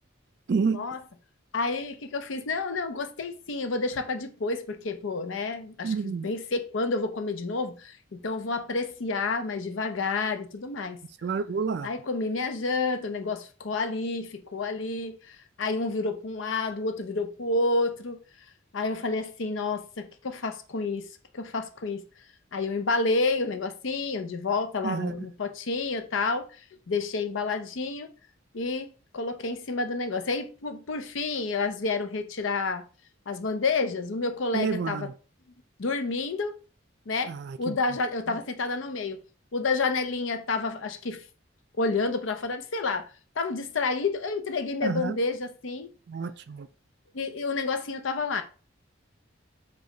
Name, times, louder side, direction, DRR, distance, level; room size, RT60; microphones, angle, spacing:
voice 1, 0.5-0.9 5.8-6.3 11.2-11.9 24.8-25.3 34.5-35.1 37.3-37.8 38.3-38.4 44.8-45.2 46.1-46.7, right 5 dB, 55° right, 0.3 m, -29 dB
voice 2, 1.5-11.0 11.8-18.2 18.7-21.1 21.3-22.0 22.5-26.5 26.9-28.1 28.5-28.9 29.1-32.8 33.3-35.1 35.8-36.6 37.1-39.2 39.5-41.2 41.8-43.1 43.4-45.9 47.1-48.4, left 3 dB, 75° left, 0.6 m, -29 dB
5.1 x 2.3 x 3.8 m
head